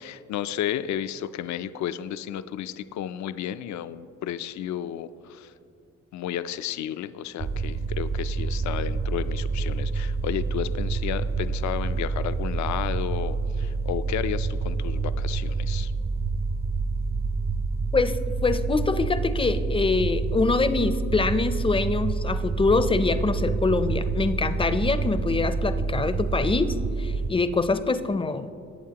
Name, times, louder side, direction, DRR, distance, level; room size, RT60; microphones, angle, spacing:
voice 1, 0.0-5.5 6.1-15.9, left 10 dB, 65° left, 12 dB, 0.5 m, -32 dB
sound 1, 7.4-27.3, right 4 dB, 30° right, 0.6 m, -28 dB
voice 2, 17.9-28.5, left 3 dB, 20° left, 11 dB, 0.5 m, -24 dB
18.5 x 8.3 x 2.9 m, 2.7 s
cardioid pair, 90°, 30 cm